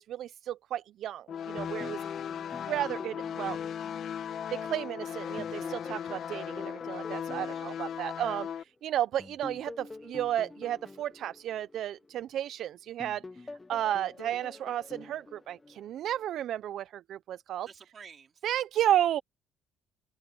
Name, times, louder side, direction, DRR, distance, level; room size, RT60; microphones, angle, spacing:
voice 1, 0.0-2.0 2.7-3.6 4.5-17.7 18.4-19.2, right 11 dB, 60° right, 0.4 m, -33 dB
sound 1, 1.3-8.6, left 8 dB, 50° left, 1.3 m, -37 dB
sound 2, 1.6-4.9 5.4-8.6 9.2-12.5 13.0-16.2, left 3 dB, 15° left, 0.7 m, -48 dB
voice 2, 2.0-2.4 7.4-8.3 17.6-18.4, right 6 dB, 35° right, 3.3 m, -54 dB
cardioid pair, 160°, 0 cm